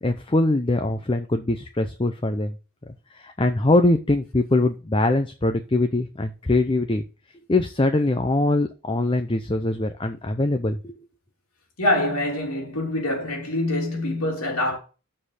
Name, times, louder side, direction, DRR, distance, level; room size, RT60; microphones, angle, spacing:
voice 1, 0.0-2.5 3.1-7.0 7.5-10.9, left 2 dB, 25° left, 0.6 m, -22 dB
voice 2, 11.8-14.8, left 1 dB, 85° left, 3.1 m, -25 dB
6.5 x 5.6 x 6.5 m
head